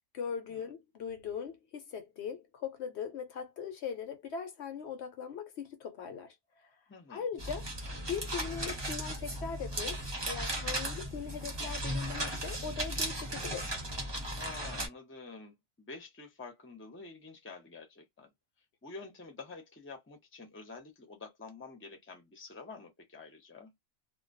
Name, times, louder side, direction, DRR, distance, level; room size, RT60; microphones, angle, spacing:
voice 1, 0.1-6.8 7.1-7.7 8.1-13.7, left 6 dB, 70° left, 0.8 m, -40 dB
voice 2, 6.9-7.2 14.3-18.3 18.8-23.7, left 4 dB, 15° left, 0.6 m, -48 dB
sound 1, 7.4-14.9, right 1 dB, 25° right, 0.7 m, -36 dB
2.2 x 2.2 x 2.5 m
omnidirectional pair, 1.2 m